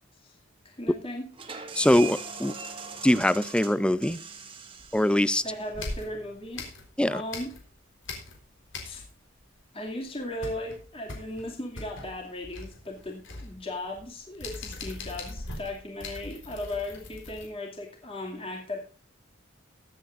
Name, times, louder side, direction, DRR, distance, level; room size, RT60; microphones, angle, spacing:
voice 1, 0.6-1.3 5.4-6.6 7.1-7.5 8.8-9.0 9.7-18.8, left 1 dB, 30° left, 2.4 m, -37 dB
sound 1, 1.3-6.8, right 5 dB, 25° right, 1.6 m, -42 dB
voice 2, 1.8-2.5 3.0-4.2 4.9-5.4 7.0-7.2, left 1 dB, 5° left, 0.5 m, -22 dB
sound 2, 4.8-5.3 5.7-7.8 8.0-9.3 9.6-9.7 10.0-17.5, left 2 dB, 70° left, 4.0 m, -41 dB
21.5 x 8.4 x 2.5 m
head